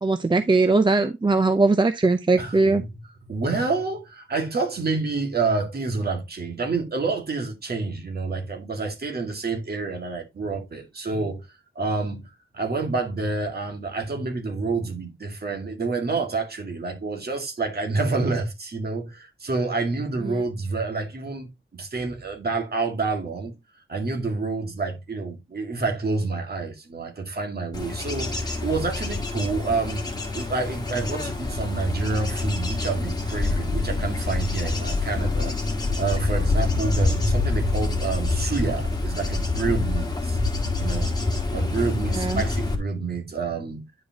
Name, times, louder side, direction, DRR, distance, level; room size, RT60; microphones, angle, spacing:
voice 1, 0.0-2.8 20.2-20.4 42.1-42.4, right 3 dB, 25° right, 0.5 m, -20 dB
voice 2, 2.4-2.9 3.2-11.5 11.8-23.5 23.9-40.4 40.8-41.2 41.5-43.8, right 3 dB, 50° right, 2.1 m, -28 dB
Bird / Insect / Wind, 27.7-42.8, left 3 dB, 20° left, 1.7 m, -26 dB
9.9 x 5.1 x 2.9 m
wide cardioid pair, 130°, 20 cm